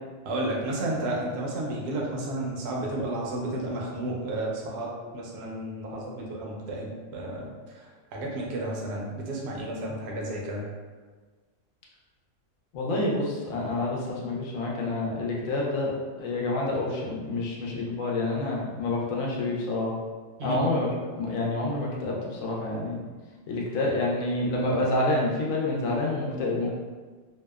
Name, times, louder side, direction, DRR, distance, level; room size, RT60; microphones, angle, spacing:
voice 1, 0.2-10.7 20.4-20.6, right 1 dB, 65° right, -2 dB, 0.7 m, -32 dB
voice 2, 12.7-19.9 20.4-23.0 23.5-26.7, left 2 dB, 80° left, -3 dB, 1.0 m, -28 dB
2.7 x 2.1 x 2.2 m, 1.4 s
omnidirectional pair, 1.4 m